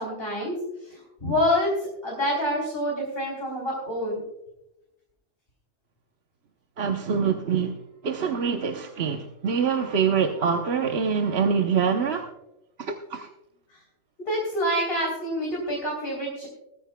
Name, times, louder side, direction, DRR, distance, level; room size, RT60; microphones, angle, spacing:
voice 1, 0.0-4.2 13.7-13.8 14.2-16.5, equal, 50° left, -2 dB, 3.5 m, -27 dB
voice 2, 6.8-7.7 8.0-12.3 12.8-13.3, right 6 dB, 60° right, 4 dB, 1.1 m, -25 dB
19.5 x 14.0 x 2.2 m, 0.88 s
omnidirectional pair, 1.3 m